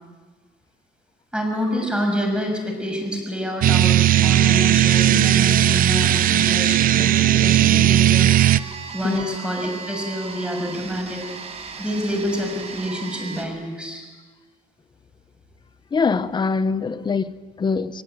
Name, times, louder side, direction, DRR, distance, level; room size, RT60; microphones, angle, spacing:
voice 1, 1.3-4.0 4.2-8.6 8.9-11.2 11.8-14.0, equal, 5° right, 6.8 m, -27 dB
sound 1, 3.6-8.6, right 12 dB, 55° right, 0.7 m, -16 dB
sound 2, 8.3-13.4, right 5 dB, 40° right, 4.5 m, -37 dB
voice 2, 9.0-9.4 15.9-18.0, left 5 dB, 25° left, 1.0 m, -23 dB
22.0 x 21.5 x 9.2 m
cardioid pair, 110°, 17 cm